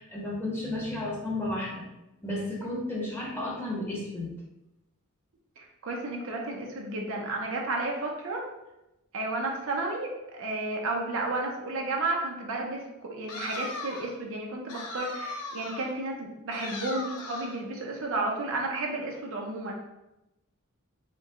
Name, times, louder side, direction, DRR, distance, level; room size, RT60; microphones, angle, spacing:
voice 1, 0.0-1.8 2.2-4.3, left 1 dB, 10° left, -5 dB, 1.0 m, -33 dB
voice 2, 5.6-8.4 9.1-19.7, right 2 dB, 60° right, 0 dB, 0.7 m, -32 dB
sound 1, 13.3-14.2 14.7-15.9 16.5-17.6, left 2 dB, 85° left, 0.7 m, -38 dB
4.5 x 2.3 x 3.6 m, 0.93 s
head